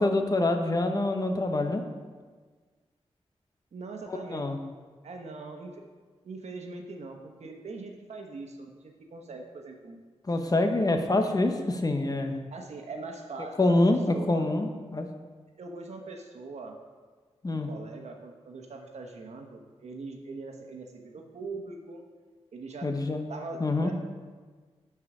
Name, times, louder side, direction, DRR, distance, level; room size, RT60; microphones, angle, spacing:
voice 1, 0.0-1.8 4.1-4.6 10.3-12.3 13.6-15.1 17.4-17.7 22.8-23.3 23.6-23.9, left 2 dB, 35° left, 5 dB, 1.0 m, -26 dB
voice 2, 3.7-4.4 5.0-5.9 6.2-10.0 12.5-14.5 15.6-16.8 17.5-22.1 22.5-22.9 23.3-23.9, right 3 dB, 80° right, 3 dB, 1.1 m, -41 dB
11.5 x 4.8 x 4.9 m, 1.4 s
cardioid pair, 70°, 11 cm